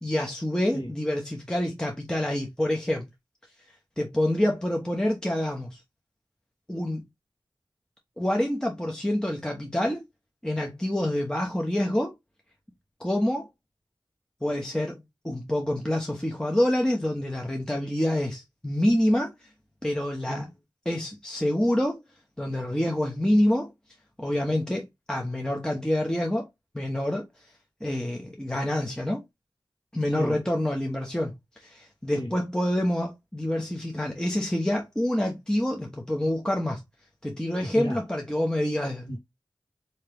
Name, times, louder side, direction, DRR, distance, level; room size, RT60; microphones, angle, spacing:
voice 1, 0.0-3.1 4.0-5.8 6.7-7.0 8.2-10.0 10.4-12.1 13.0-13.5 14.4-19.3 19.8-20.5 20.8-22.0 22.4-23.7 24.2-26.5 26.7-27.3 27.8-29.2 29.9-31.3 31.6-36.8 37.2-39.1, left 1 dB, 10° left, 0.7 m, -27 dB
voice 2, 37.6-38.0 39.1-39.2, equal, 80° left, 1.3 m, -33 dB
3.6 x 2.8 x 3.3 m
wide cardioid pair, 60°, 8 cm